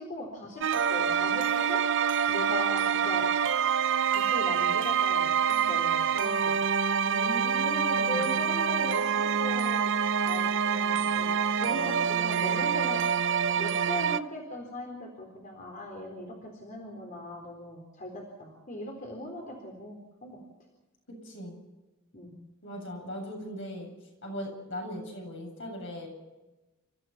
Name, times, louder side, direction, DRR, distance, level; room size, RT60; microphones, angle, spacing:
voice 1, 0.0-1.8 2.3-3.3 4.1-6.6 7.6-10.0 10.2-13.0 13.6-20.4 22.1-22.3, left 1 dB, 40° left, 0 dB, 4.0 m, -39 dB
sound 1, 0.6-14.2, right 7 dB, 60° right, 0.7 m, -26 dB
voice 2, 7.0-8.3 21.2-21.6 22.6-23.9 24.2-26.1, equal, 60° left, 1 dB, 8.0 m, -39 dB
30.0 x 14.5 x 5.9 m, 1.1 s
head